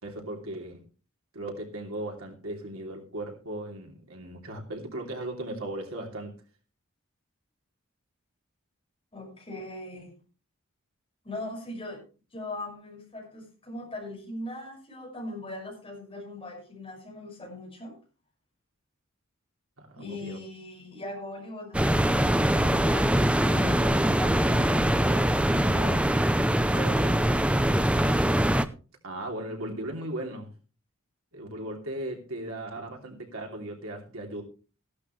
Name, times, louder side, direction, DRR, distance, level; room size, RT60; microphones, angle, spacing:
voice 1, 0.0-0.8 1.3-6.4 19.8-20.4 29.0-30.5 31.3-34.4, right 1 dB, 85° right, 2 dB, 3.0 m, -37 dB
voice 2, 9.1-10.1 11.2-12.0 12.3-17.9 20.0-26.0 26.7-27.5, left 1 dB, 25° left, 0 dB, 5.8 m, -40 dB
sound 1, 21.7-28.7, right 1 dB, 5° right, 0.5 m, -23 dB
15.0 x 11.5 x 3.2 m, 0.35 s
head